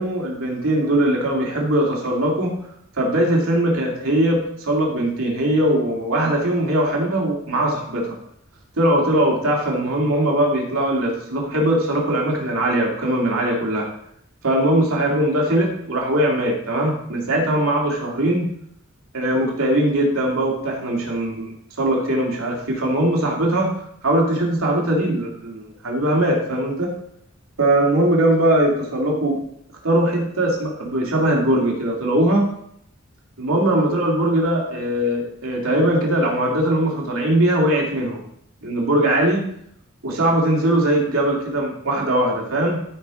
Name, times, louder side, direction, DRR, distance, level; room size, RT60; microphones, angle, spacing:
voice 1, 0.0-2.6 3.0-8.2 8.8-13.9 14.4-18.5 19.1-23.8 24.0-26.9 27.6-29.4 29.8-32.5 33.4-38.2 38.6-39.4 40.0-42.8, right 1 dB, 85° right, -1 dB, 2.4 m, -20 dB
13.5 x 4.5 x 4.9 m, 0.70 s
head